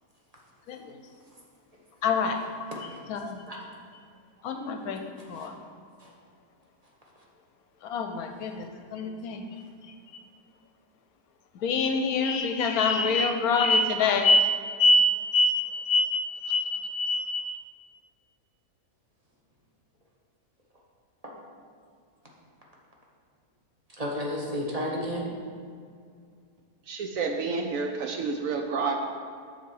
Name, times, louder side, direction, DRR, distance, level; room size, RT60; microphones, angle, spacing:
voice 1, 2.0-2.4 3.1-3.4 4.4-5.0 5.3-5.5 7.9-9.4 11.6-17.6, left 2 dB, 75° left, 5 dB, 1.0 m, -25 dB
voice 2, 5.2-5.5 6.0-6.1 9.0-9.1 21.2-21.3 24.0-25.3, equal, 25° right, -3 dB, 1.1 m, -33 dB
voice 3, 26.9-29.1, right 4 dB, 70° right, 3 dB, 0.9 m, -29 dB
7.1 x 4.0 x 6.3 m, 2.2 s
omnidirectional pair, 1.7 m